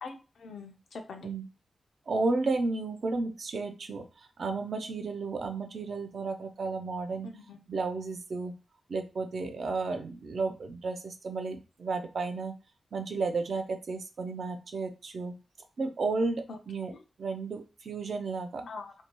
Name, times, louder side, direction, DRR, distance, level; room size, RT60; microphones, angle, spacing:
voice 1, 0.0-1.3 7.2-7.7 16.5-17.0 18.7-18.9, left 4 dB, 80° left, 4 dB, 0.5 m, -44 dB
voice 2, 2.1-7.3 7.7-8.5 8.9-12.6 12.9-15.3 15.8-16.9 17.2-18.7, right 3 dB, 60° right, 7 dB, 0.4 m, -33 dB
2.6 x 2.2 x 2.9 m, 0.32 s
wide cardioid pair, 130°, 0 cm